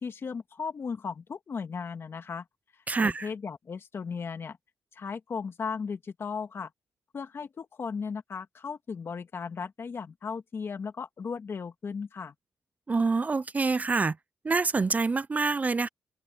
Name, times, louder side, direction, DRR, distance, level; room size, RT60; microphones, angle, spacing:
voice 1, 0.0-2.5 3.0-4.6 5.0-6.7 7.1-12.3, left 5 dB, 50° left, 2.0 m, -36 dB
voice 2, 2.9-3.3 12.9-14.2 14.4-15.9, right 4 dB, 30° right, 0.5 m, -26 dB
open air
cardioid pair, 85°, 5 cm